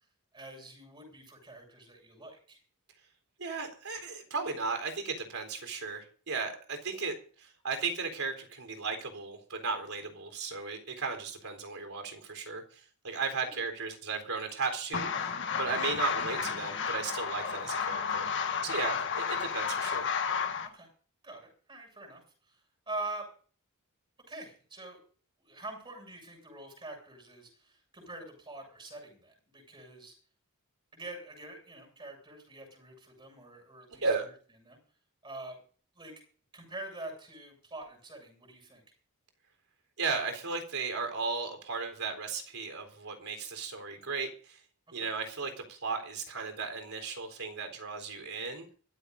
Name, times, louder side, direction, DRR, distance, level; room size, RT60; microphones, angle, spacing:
voice 1, 0.3-2.6 13.4-13.6 20.6-20.9 21.2-23.3 24.3-25.0 25.4-30.1 30.9-34.1 34.6-34.8 35.2-35.6 36.0-36.1 36.5-38.8 44.9-45.1, right 2 dB, 25° right, 2 dB, 7.4 m, -45 dB
voice 2, 3.4-15.3 15.6-18.3 18.6-20.1 33.9-34.3 40.0-44.6 44.9-48.7, right 4 dB, 70° right, 5 dB, 3.9 m, -35 dB
sound 1, 14.9-20.7, left 6 dB, 55° left, 1.7 m, -32 dB
24.5 x 13.5 x 2.7 m, 0.42 s
head